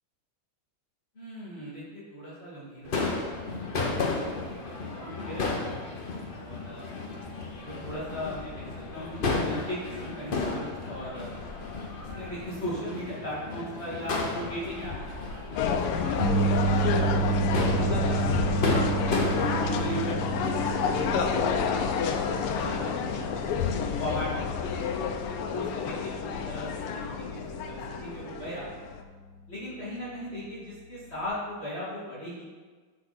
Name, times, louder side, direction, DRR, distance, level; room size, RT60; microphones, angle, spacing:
voice 1, 1.2-3.4 3.8-6.9 7.6-11.4 12.1-18.4 19.0-21.6 22.0-23.5 23.8-25.0 25.5-28.7 29.5-32.4, equal, 30° left, -9 dB, 2.4 m, -38 dB
Crowd / Fireworks, 2.9-20.1, left 3 dB, 70° left, 0.5 m, -33 dB
sound 1, 15.6-29.0, left 6 dB, 85° left, 1.6 m, -29 dB
sound 2, 16.2-28.5 28.8-29.1 31.2-31.3, right 4 dB, 20° right, 2.2 m, -31 dB
10.5 x 5.1 x 4.2 m, 1.4 s
omnidirectional pair, 2.4 m